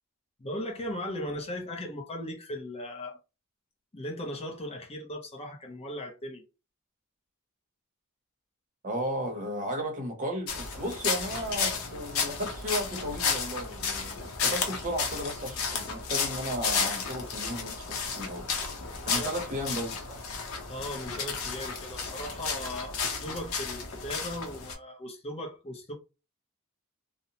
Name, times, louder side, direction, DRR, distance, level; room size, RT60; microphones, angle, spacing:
voice 1, 0.4-3.2 3.9-6.4 19.2-19.4 20.7-25.9, left 1 dB, 25° left, 0.6 m, -38 dB
voice 2, 8.8-18.5 19.1-20.2, equal, 35° right, 0.7 m, -34 dB
sound 1, 10.5-24.7, left 5 dB, 70° left, 0.7 m, -32 dB
2.8 x 2.0 x 2.8 m
head